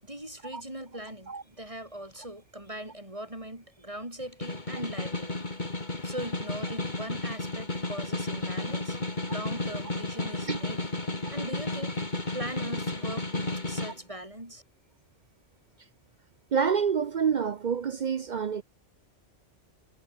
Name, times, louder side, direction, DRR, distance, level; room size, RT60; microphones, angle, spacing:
voice 1, 0.0-5.4 6.0-9.0 9.3-10.9 11.3-12.0 12.3-14.6, right 1 dB, 25° right, 7.4 m, -40 dB
Snare drum, 4.2-14.0, left 2 dB, 40° left, 3.3 m, -33 dB
voice 2, 16.5-18.6, right 7 dB, 50° right, 0.6 m, -27 dB
omnidirectional pair, 1.2 m